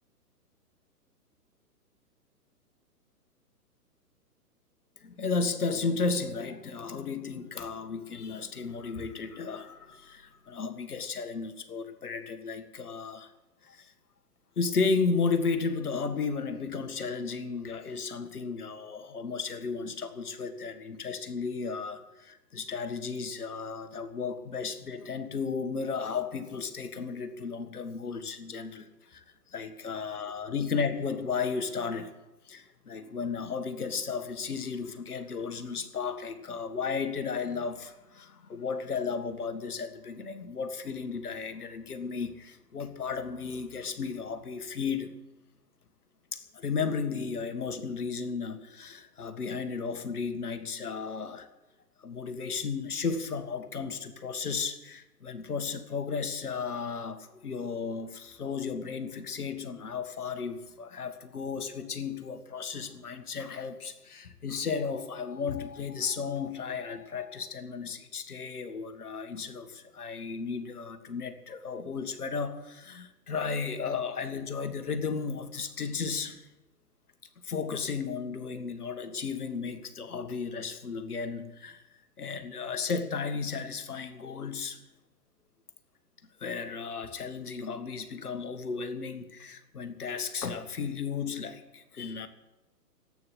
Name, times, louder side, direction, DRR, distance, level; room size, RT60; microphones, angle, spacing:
voice 1, 5.0-13.3 13.6-13.9 14.6-29.2 29.5-32.1 32.5-45.2 46.3-51.5 52.0-76.5 77.4-81.8 82.2-84.8 86.4-92.3, left 5 dB, 70° left, 9 dB, 1.9 m, -34 dB
14.0 x 9.1 x 9.9 m, 1.0 s
figure-of-eight pair, 120°, 47 cm